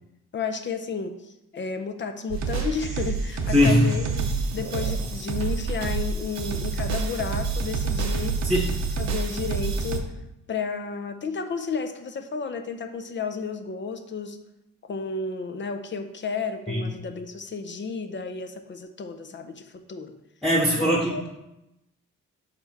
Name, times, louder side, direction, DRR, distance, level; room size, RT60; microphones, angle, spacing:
voice 1, 0.3-8.4 9.0-10.1 10.5-14.4 14.9-20.2 20.8-21.2, left 5 dB, 40° left, 7 dB, 0.6 m, -32 dB
sound 1, 2.3-10.0, right 5 dB, 60° right, 0.8 m, -28 dB
voice 2, 3.5-3.8 8.4-8.7 16.7-16.9 20.4-21.3, left 1 dB, ahead, -3 dB, 1.1 m, -21 dB
6.8 x 3.5 x 4.2 m, 0.89 s
cardioid pair, 90°, 30 cm